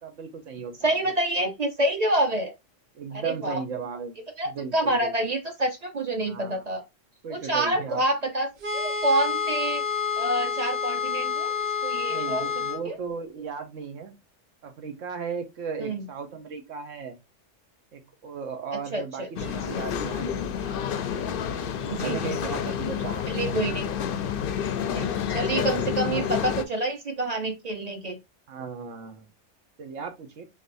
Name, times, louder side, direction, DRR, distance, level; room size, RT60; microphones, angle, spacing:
voice 1, 0.0-1.1 2.9-4.2 4.4-5.1 6.3-6.7 7.2-8.0 12.1-14.1 14.6-17.1 17.9-20.7 21.8-23.3 25.6-25.9 28.5-29.3 29.8-30.4, right 5 dB, 85° right, 1.3 m, -36 dB
voice 2, 0.8-2.5 3.1-3.6 4.4-6.8 7.3-9.8 10.2-11.5 11.8-12.4 12.8-13.0 15.8-16.0 18.7-19.3 21.9-22.2 23.3-23.9 24.9-28.2, right 1 dB, 40° right, 0.8 m, -27 dB
sound 1, 8.6-12.8, left 6 dB, 60° right, 1.1 m, -28 dB
sound 2, 19.4-26.6, left 8 dB, 60° left, 0.6 m, -29 dB
3.9 x 3.6 x 2.6 m
omnidirectional pair, 1.3 m